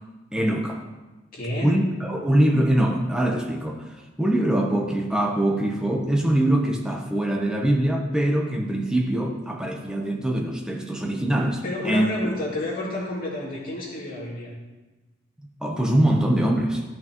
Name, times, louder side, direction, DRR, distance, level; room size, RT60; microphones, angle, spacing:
voice 1, 0.3-0.8 1.6-3.9 4.2-12.1 15.6-16.8, right 1 dB, 5° right, 1 dB, 0.9 m, -23 dB
voice 2, 1.3-1.8 11.6-14.5, left 1 dB, 45° left, -6 dB, 2.7 m, -30 dB
13.0 x 6.1 x 3.0 m, 1.1 s
head